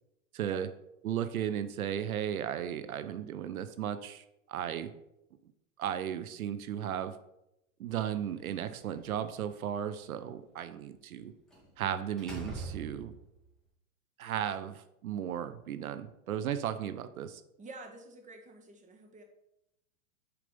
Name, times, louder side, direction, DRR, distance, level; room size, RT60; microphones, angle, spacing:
voice 1, 0.3-0.7 1.0-4.9 5.8-7.1 7.8-11.3 11.8-13.1 14.2-17.4, right 9 dB, 80° right, 11 dB, 0.8 m, -35 dB
Slam, 8.3-9.4 11.5-11.7 12.2-13.4, right 3 dB, ahead, 2.5 m, -43 dB
voice 2, 17.6-19.2, right 3 dB, 15° right, 3 dB, 1.6 m, -49 dB
6.9 x 5.0 x 5.3 m, 0.84 s
hypercardioid pair, 115°, 42 cm